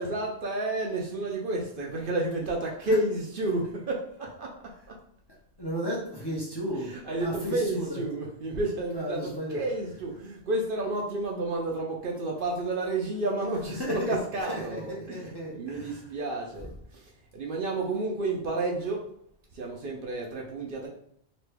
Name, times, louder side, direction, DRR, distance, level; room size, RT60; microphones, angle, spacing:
voice 1, 0.0-4.6 6.7-16.7 17.3-19.1 19.5-20.9, right 2 dB, 60° right, -1 dB, 0.7 m, -31 dB
voice 2, 5.6-8.0 8.9-9.6 13.8-16.1, equal, 25° left, -5 dB, 0.7 m, -34 dB
3.0 x 2.7 x 3.3 m, 0.69 s
omnidirectional pair, 1.1 m